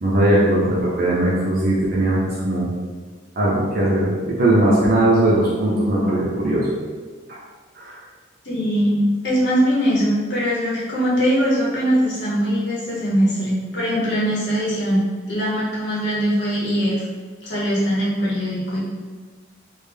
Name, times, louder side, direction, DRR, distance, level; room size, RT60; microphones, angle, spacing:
voice 1, 0.0-2.7 3.4-6.7 7.3-7.4 7.7-8.0, right 1 dB, 45° right, -7 dB, 0.5 m, -19 dB
voice 2, 8.4-17.1 17.4-18.8, equal, 60° left, -7 dB, 0.9 m, -21 dB
3.3 x 2.1 x 3.4 m, 1.4 s
head